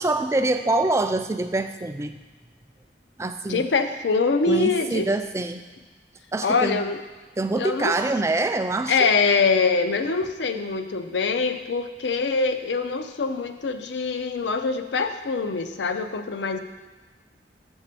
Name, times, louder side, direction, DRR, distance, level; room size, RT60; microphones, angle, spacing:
voice 1, 0.0-2.2 3.2-3.7 4.5-5.6 6.3-6.8 7.4-9.1, right 2 dB, 15° right, 8 dB, 0.3 m, -25 dB
voice 2, 3.5-5.1 6.4-7.0 7.6-7.9 8.9-16.6, left 4 dB, 75° left, 7 dB, 0.5 m, -24 dB
7.0 x 4.2 x 6.7 m, 1.3 s
head